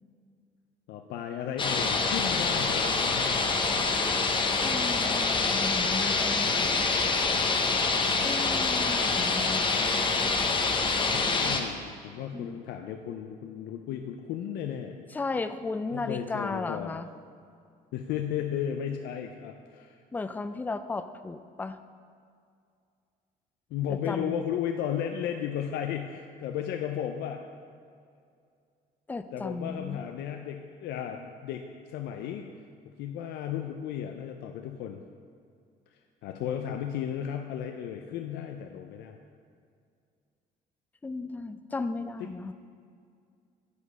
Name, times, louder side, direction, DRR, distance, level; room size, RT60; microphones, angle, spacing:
voice 1, 0.9-3.6 11.1-15.0 15.9-17.0 17.9-20.0 23.7-27.4 29.3-31.6 31.9-32.5 33.0-35.0 36.2-39.2 42.2-42.3, left 9 dB, 80° left, 4 dB, 0.5 m, -34 dB
sound 1, 1.6-11.6, left 4 dB, 30° left, 0.7 m, -26 dB
voice 2, 4.6-6.8 8.2-10.1 12.3-12.6 15.1-17.1 20.1-21.8 23.9-24.4 29.1-30.0 41.0-42.5, left 3 dB, 10° left, 10 dB, 0.3 m, -35 dB
8.1 x 5.0 x 5.5 m, 2.3 s
cardioid pair, 110°, 17 cm